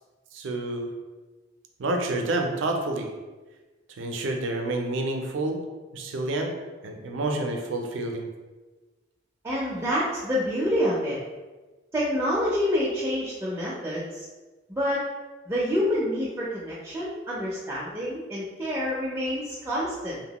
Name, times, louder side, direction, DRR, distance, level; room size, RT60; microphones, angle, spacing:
voice 1, 0.3-0.9 1.8-3.1 4.0-5.6 5.9-6.5 6.8-8.3, right 2 dB, 80° right, 3 dB, 0.4 m, -28 dB
voice 2, 9.4-11.2 11.9-14.3 14.7-15.0 15.5-20.2, equal, 15° right, -7 dB, 0.4 m, -27 dB
2.8 x 2.1 x 2.9 m, 1.2 s
head